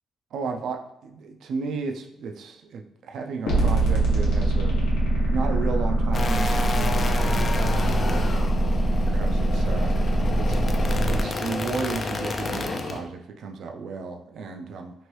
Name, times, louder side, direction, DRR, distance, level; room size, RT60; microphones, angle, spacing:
voice 1, 0.3-4.8 5.3-8.3 9.0-9.9 10.4-10.6 11.1-14.9, right 4 dB, 70° right, 4 dB, 0.3 m, -33 dB
sound 1, 3.5-11.2, right 1 dB, 75° left, 0.9 m, -23 dB
sound 2, 6.1-13.0, left 3 dB, 40° left, 0.3 m, -30 dB
3.0 x 2.5 x 3.1 m, 0.80 s
cardioid pair, 90°, 0 cm